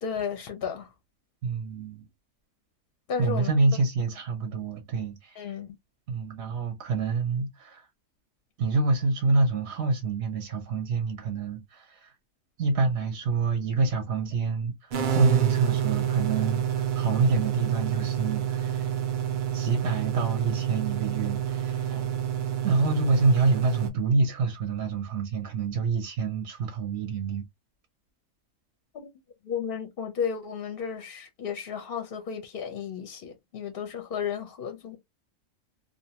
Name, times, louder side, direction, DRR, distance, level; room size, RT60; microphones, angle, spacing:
voice 1, 0.0-0.9 3.1-3.5 5.4-5.8 28.9-29.1 29.4-35.0, left 7 dB, 60° left, 0.6 m, -33 dB
voice 2, 1.4-2.1 3.2-5.6 6.1-7.9 8.6-12.1 12.6-18.9 19.5-22.1 22.6-27.5, right 3 dB, 60° right, 0.8 m, -27 dB
sound 1, 14.9-23.9, right 9 dB, 85° right, 0.4 m, -28 dB
2.5 x 2.1 x 2.7 m
omnidirectional pair, 1.4 m